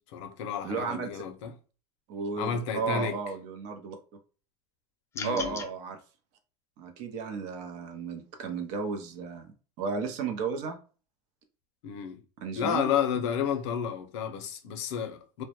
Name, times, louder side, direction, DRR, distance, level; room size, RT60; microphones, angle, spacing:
voice 1, 0.1-1.5 2.4-3.2 5.1-5.6 11.8-12.2 12.6-15.4, left 8 dB, 80° left, 0.5 m, -31 dB
voice 2, 0.6-1.2 2.1-4.0 5.2-6.0 6.8-10.8 12.4-12.9, right 5 dB, 55° right, 0.6 m, -34 dB
sound 1, 5.1-5.7, left 5 dB, 20° left, 0.4 m, -37 dB
2.1 x 2.1 x 2.8 m
supercardioid pair, 135°, 15 cm